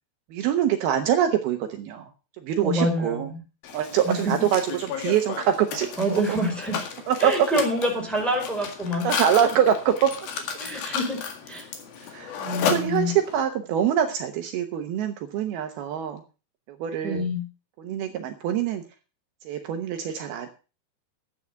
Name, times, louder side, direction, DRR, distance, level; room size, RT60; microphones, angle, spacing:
voice 1, 0.3-2.1 2.4-3.3 3.7-6.4 7.1-7.5 9.0-10.1 12.0-16.2 16.7-17.3 17.8-18.8 19.4-20.5, right 9 dB, 75° right, 6 dB, 2.8 m, -24 dB
voice 2, 2.6-3.4 4.1-4.3 6.0-6.8 7.2-9.1 10.6-11.2 11.5-11.7 12.4-13.1 17.0-17.4, equal, ahead, -1 dB, 4.5 m, -26 dB
Mechanisms, 3.6-13.4, left 7 dB, 65° left, 3.6 m, -33 dB
12.0 x 9.1 x 5.8 m, 0.33 s
omnidirectional pair, 4.7 m